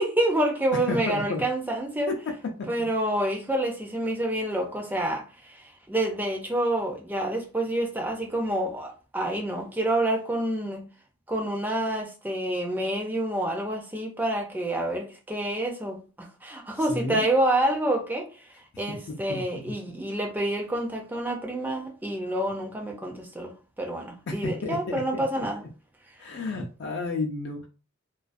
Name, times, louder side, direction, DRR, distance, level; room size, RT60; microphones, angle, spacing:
voice 1, 0.0-2.1 2.7-10.9 11.3-23.5 23.8-25.6, right 1 dB, 10° right, 0.4 m, -28 dB
voice 2, 0.9-1.4 2.1-2.2 2.6-2.7 16.9-17.2 18.9-19.4 24.3-25.4 26.2-27.7, left 3 dB, 55° left, 0.4 m, -32 dB
2.4 x 2.3 x 2.5 m
head